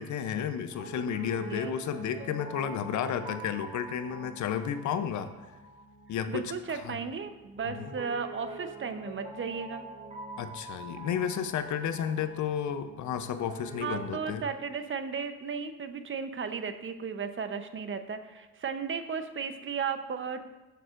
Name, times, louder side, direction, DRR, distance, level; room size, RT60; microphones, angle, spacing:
voice 1, 0.0-5.3 6.1-6.4 6.7-7.0 7.6-7.9 10.4-14.5, left 8 dB, 70° left, 10 dB, 0.7 m, -32 dB
Piano, 0.7-14.4, right 2 dB, 20° right, 2.1 m, -45 dB
voice 2, 6.3-9.8 13.8-20.4, right 6 dB, 40° right, 9 dB, 0.8 m, -35 dB
14.0 x 6.8 x 2.5 m, 1.2 s
supercardioid pair, 70°, 31 cm